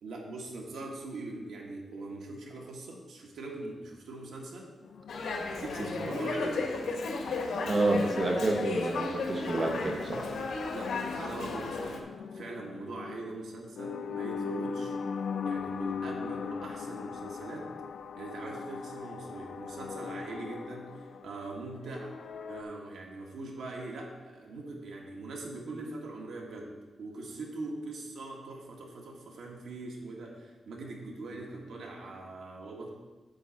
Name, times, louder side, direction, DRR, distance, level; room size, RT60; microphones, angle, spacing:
voice 1, 0.0-4.7 5.5-6.7 10.7-12.1 12.3-15.0 15.4-17.7 18.1-22.2 22.5-26.7 27.0-32.9, right 2 dB, 85° right, -1 dB, 1.6 m, -42 dB
sound 1, 4.8-22.6, left 5 dB, 60° left, 0.4 m, -40 dB
Dog, 5.1-12.0, left 3 dB, 85° left, 1.3 m, -34 dB
voice 2, 7.6-10.3, right 2 dB, 35° right, 2 dB, 1.1 m, -29 dB
9.6 x 3.9 x 7.2 m, 1.2 s
wide cardioid pair, 160°, 0 cm